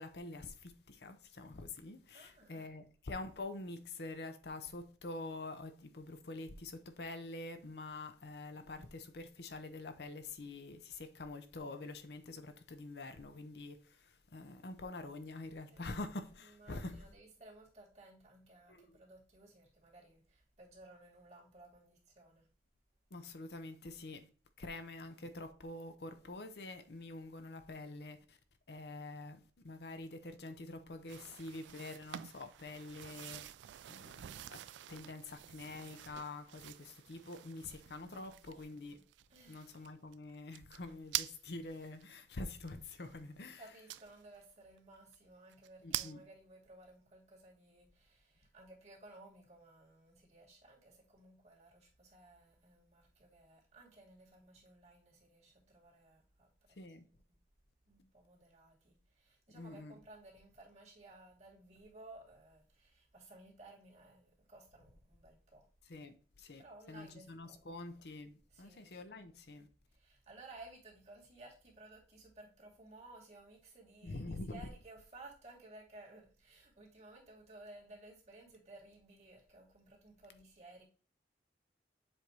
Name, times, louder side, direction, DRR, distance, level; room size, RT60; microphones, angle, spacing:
voice 1, 0.0-17.0 18.7-19.0 23.1-24.3 24.6-28.4 28.7-33.5 33.9-39.1 39.5-43.6 45.8-46.2 56.8-57.0 59.5-59.9 65.9-69.7 74.0-74.6, left 2 dB, 70° left, 0.7 m, -46 dB
voice 2, 2.1-2.7 8.4-8.6 15.7-15.9 16.4-22.5 24.6-24.8 38.2-39.0 39.3-39.7 43.6-57.4 57.9-65.7 66.6-67.7 68.5-69.1 69.9-80.8, right 2 dB, 40° right, 2.3 m, -58 dB
sound 1, 31.1-42.0 42.7-42.8 43.9-44.4 44.8-44.9 45.1-45.2 45.5-46.1, right 14 dB, 90° right, 0.3 m, -46 dB
7.4 x 2.7 x 4.7 m
head